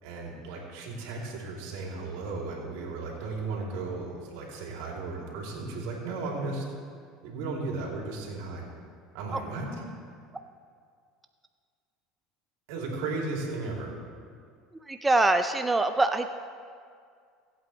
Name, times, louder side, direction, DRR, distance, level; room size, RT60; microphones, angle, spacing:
voice 1, 0.0-6.6 7.2-8.7 9.1-9.7 12.7-13.9, right 3 dB, 75° right, -1 dB, 2.9 m, -35 dB
voice 2, 14.9-16.3, right 2 dB, 10° right, 7 dB, 0.5 m, -24 dB
23.0 x 8.5 x 3.2 m, 2.2 s
supercardioid pair, 105°, 0 cm